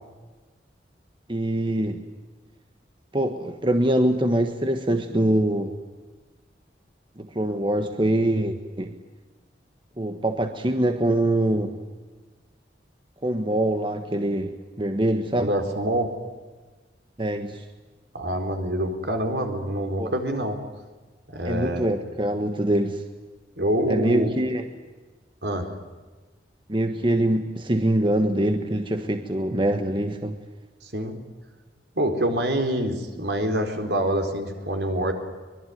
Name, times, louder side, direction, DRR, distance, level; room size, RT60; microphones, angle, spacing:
voice 1, 1.3-2.0 3.1-5.7 7.2-8.9 10.0-11.8 13.2-15.5 17.2-17.6 20.0-20.1 21.4-23.0 23.9-24.6 26.7-30.4, right 1 dB, 30° right, 6 dB, 1.4 m, -24 dB
voice 2, 15.4-16.1 18.1-20.6 21.3-21.9 23.6-24.3 25.4-25.7 30.8-31.2 32.0-35.1, right 1 dB, 65° right, 5 dB, 4.3 m, -26 dB
25.0 x 22.0 x 9.4 m, 1.3 s
head